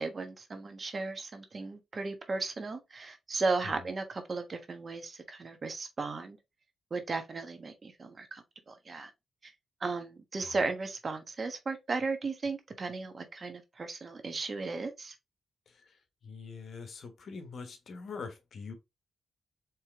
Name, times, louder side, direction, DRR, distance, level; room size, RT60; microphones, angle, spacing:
voice 1, 0.0-6.4 6.9-9.1 9.4-9.5 9.8-15.1, right 3 dB, 45° right, 1.2 m, -35 dB
voice 2, 15.7-18.7, left 5 dB, 70° left, 1.2 m, -44 dB
4.6 x 3.4 x 3.1 m
cardioid pair, 70°, 0 cm